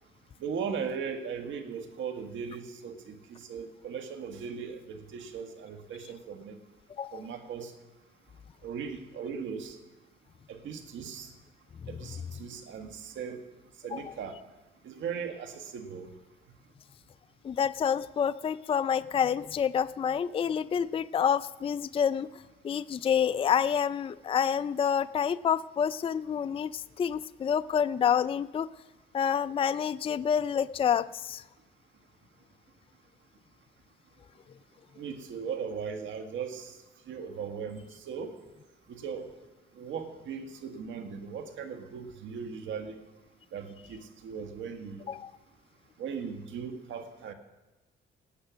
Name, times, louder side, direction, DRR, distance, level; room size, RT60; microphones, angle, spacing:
voice 1, 0.4-6.6 7.1-7.7 8.6-9.8 10.5-11.3 11.9-13.4 13.8-14.3 14.8-16.1 35.0-36.7 37.1-37.8 38.1-38.3 38.9-39.3 39.8-42.9 43.5-45.1 46.0-47.3, right 6 dB, 75° right, 6 dB, 1.7 m, -38 dB
voice 2, 17.4-28.7 29.1-31.4 45.1-45.3, left 8 dB, 30° left, 15 dB, 0.4 m, -28 dB
18.0 x 8.9 x 6.2 m, 1.1 s
cardioid pair, 90°, 20 cm